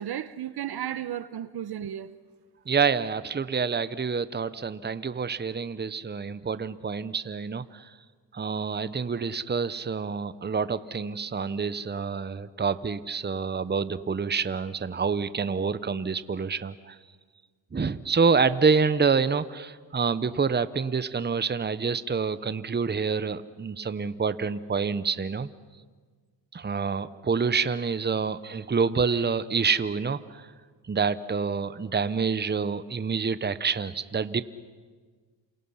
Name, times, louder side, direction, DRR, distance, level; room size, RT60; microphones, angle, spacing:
voice 1, 0.0-2.1, right 10 dB, 60° right, 1.0 m, -34 dB
voice 2, 2.7-7.8 8.3-16.9 17.7-25.5 26.5-30.4 30.9-34.4, right 5 dB, 25° right, 1.0 m, -27 dB
29.0 x 27.5 x 5.7 m
cardioid pair, 65°, 44 cm